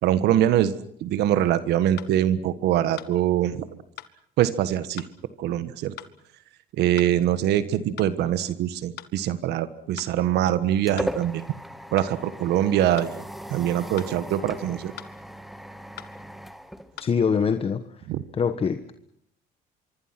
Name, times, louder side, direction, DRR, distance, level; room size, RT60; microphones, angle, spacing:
voice 1, 0.0-3.7 4.4-5.1 5.4-5.9 6.7-11.4 11.9-13.2 13.5-14.9 18.1-18.2, right 11 dB, 80° right, 13 dB, 1.5 m, -23 dB
sound 1, 2.0-2.1 3.0-3.1 4.0-4.1 5.0-5.1 6.0-6.1 7.0-7.1 8.0-8.1 9.0-9.1 10.0-10.1 11.0-11.1 12.0-12.1 13.0-13.1 14.0-14.1 15.0-15.1 16.0-16.1 17.0-17.1, left 13 dB, 75° left, 1.6 m, -40 dB
sound 2, 10.1-17.6, equal, ahead, 1.7 m, -38 dB
voice 2, 17.0-18.1 18.3-18.9, left 6 dB, 35° left, 10 dB, 1.4 m, -24 dB
25.5 x 24.0 x 6.0 m, 0.69 s
cardioid pair, 110°, 17 cm